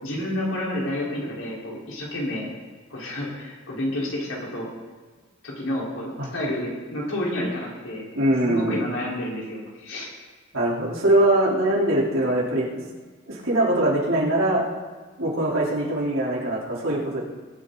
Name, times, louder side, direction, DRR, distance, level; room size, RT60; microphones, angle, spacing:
voice 1, 0.0-2.5 2.9-4.7 5.4-8.1 8.4-10.1, left 1 dB, 90° left, -4 dB, 4.4 m, -29 dB
voice 2, 8.2-8.9 10.5-12.8 13.3-14.6 15.2-17.2, right 1 dB, 80° right, -6 dB, 3.9 m, -22 dB
21.0 x 8.7 x 4.0 m, 1.4 s
head